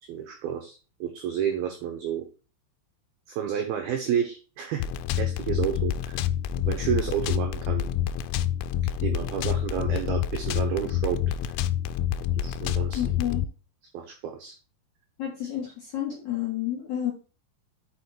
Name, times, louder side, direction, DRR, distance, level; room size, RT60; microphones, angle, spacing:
voice 1, 0.1-2.2 3.3-4.9 5.2-6.2 6.7-7.9 9.0-11.2 12.4-13.0 13.9-14.5, right 9 dB, 85° right, 4 dB, 2.1 m, -30 dB
sound 1, 4.8-13.5, left 10 dB, 90° left, 3.1 m, -27 dB
voice 2, 12.9-13.4 15.2-17.1, left 11 dB, 55° left, -4 dB, 2.1 m, -30 dB
6.3 x 5.6 x 4.3 m, 0.34 s
omnidirectional pair, 5.6 m